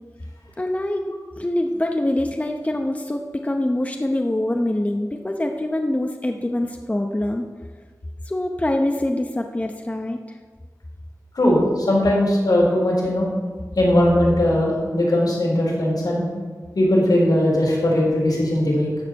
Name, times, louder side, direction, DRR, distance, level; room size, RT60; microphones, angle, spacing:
voice 1, 0.6-7.5 8.2-10.4, left 1 dB, 20° left, 3 dB, 0.8 m, -24 dB
voice 2, 11.3-13.3 13.8-16.2 16.7-18.9, left 1 dB, 85° left, -4 dB, 4.1 m, -19 dB
13.0 x 4.9 x 8.4 m, 1.5 s
wide cardioid pair, 80°, 7 cm